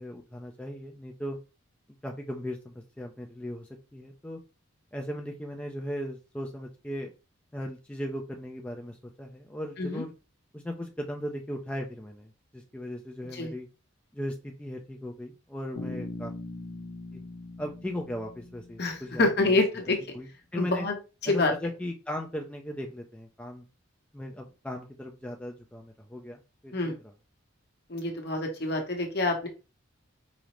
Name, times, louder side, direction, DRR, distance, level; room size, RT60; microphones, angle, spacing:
voice 1, 0.0-1.4 2.0-4.4 4.9-7.1 7.5-10.1 10.5-13.7 14.1-16.3 17.1-17.2 17.6-19.5 20.1-20.9 21.3-23.6 24.1-26.9, equal, 5° left, 1 dB, 0.3 m, -37 dB
Bass guitar, 15.8-19.6, left 2 dB, 90° left, 0.5 m, -41 dB
voice 2, 18.8-20.0 20.5-20.9 21.2-21.5 26.7-27.0 27.9-29.5, left 2 dB, 55° left, 2 dB, 0.9 m, -27 dB
4.9 x 2.0 x 3.0 m, 0.31 s
head